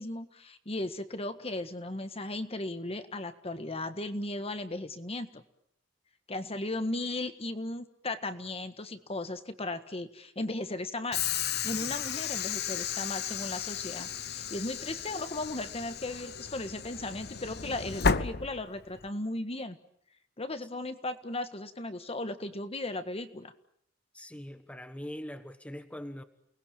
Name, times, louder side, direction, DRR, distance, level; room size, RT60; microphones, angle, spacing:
voice 1, 0.0-5.4 6.3-11.3 11.6-19.8 20.4-23.5, left 2 dB, 30° left, 1.6 m, -36 dB
Train / Sliding door, 11.1-19.1, left 6 dB, 60° left, 1.1 m, -34 dB
voice 2, 24.1-26.2, equal, 5° left, 1.4 m, -42 dB
29.0 x 20.0 x 8.7 m
head